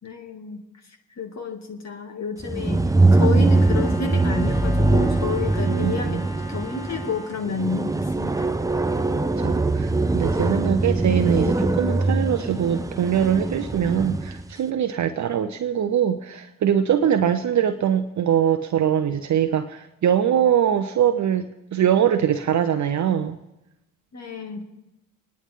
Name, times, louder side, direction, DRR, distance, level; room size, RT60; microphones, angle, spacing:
voice 1, 0.0-0.6 1.1-6.2 6.5-8.5 24.1-24.6, left 5 dB, 40° left, 4 dB, 2.5 m, -30 dB
sound 1, 2.4-14.4, right 2 dB, 10° right, 0.8 m, -22 dB
Brass instrument, 3.4-7.4, right 1 dB, 80° left, 4.5 m, -41 dB
voice 2, 5.7-6.0 9.4-23.4, right 9 dB, 45° right, 7 dB, 0.9 m, -22 dB
28.5 x 10.0 x 3.7 m, 0.92 s
hypercardioid pair, 55°, 39 cm